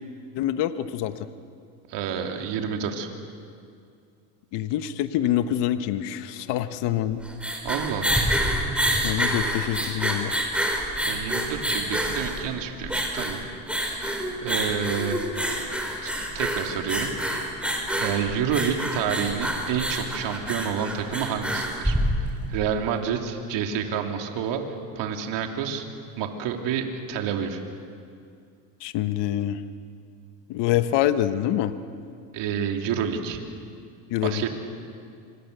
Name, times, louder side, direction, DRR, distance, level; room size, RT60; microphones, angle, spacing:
voice 1, 0.3-1.1 4.5-7.2 9.0-10.3 28.8-29.6 30.5-31.7 34.1-34.4, left 12 dB, 55° left, 10 dB, 1.4 m, -25 dB
voice 2, 1.9-3.1 7.6-8.2 11.1-13.5 13.7-15.2 16.0-17.1 18.0-24.6 24.9-25.8 26.2-27.6 32.3-33.4 34.2-34.5, right 7 dB, 60° right, 3 dB, 3.3 m, -29 dB
sound 1, 7.1-22.6, right 1 dB, ahead, 4.6 m, -27 dB
26.5 x 25.5 x 6.9 m, 2.4 s
supercardioid pair, 105°, 49 cm